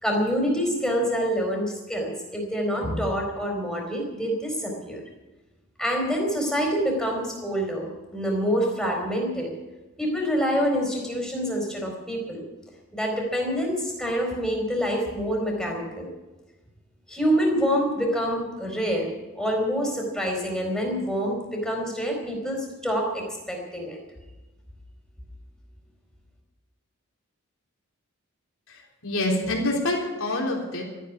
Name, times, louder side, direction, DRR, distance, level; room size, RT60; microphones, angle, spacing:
voice 1, 0.0-5.0 5.8-9.5 10.0-12.4 12.9-16.1 17.1-24.0, equal, ahead, 0 dB, 4.3 m, -26 dB
voice 2, 28.7-30.8, left 1 dB, 80° left, -1 dB, 3.7 m, -26 dB
14.0 x 10.0 x 9.6 m, 1.1 s
head